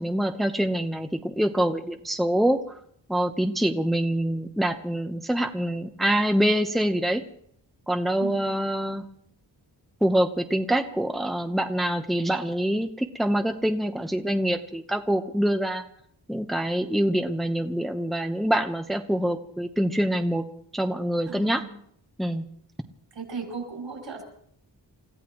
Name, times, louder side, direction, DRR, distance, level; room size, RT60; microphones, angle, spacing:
voice 1, 0.0-2.6 3.1-7.2 7.9-9.0 10.0-15.8 16.3-20.4 20.7-21.6 22.2-22.5, right 1 dB, ahead, 6 dB, 1.0 m, -25 dB
voice 2, 8.2-8.5 21.3-21.7 23.1-24.2, right 5 dB, 80° right, 1 dB, 5.5 m, -36 dB
29.5 x 15.0 x 3.1 m, 0.67 s
wide cardioid pair, 120°, 44 cm